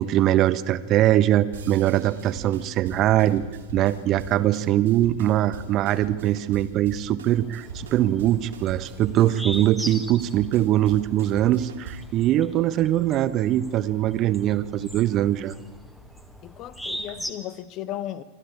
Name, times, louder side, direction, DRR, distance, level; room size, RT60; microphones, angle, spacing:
voice 1, 0.0-3.4 3.7-15.5, right 13 dB, 35° right, 0.9 m, -22 dB
sound 1, 1.5-12.2, right 4 dB, 65° right, 2.6 m, -41 dB
sound 2, 7.3-17.3, equal, 5° left, 1.7 m, -40 dB
voice 2, 16.4-18.2, left 12 dB, 35° left, 0.9 m, -35 dB
25.0 x 13.0 x 8.6 m
figure-of-eight pair, 90°, 0 cm